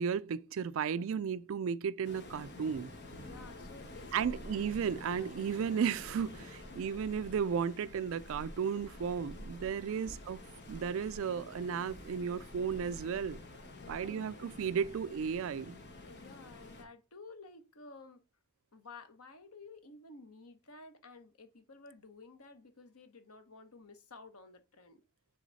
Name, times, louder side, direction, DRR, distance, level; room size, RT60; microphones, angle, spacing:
voice 1, 0.0-2.9 4.1-10.4 10.7-13.4 13.9-15.8, right 7 dB, 65° right, 0.4 m, -34 dB
Waves surf, 2.0-16.8, left 1 dB, 50° left, 1.6 m, -49 dB
voice 2, 3.2-4.5 4.8-5.3 6.6-6.9 9.9-10.2 13.8-14.3 15.9-18.2 18.7-25.0, left 3 dB, 90° left, 1.2 m, -53 dB
9.1 x 3.9 x 4.1 m
head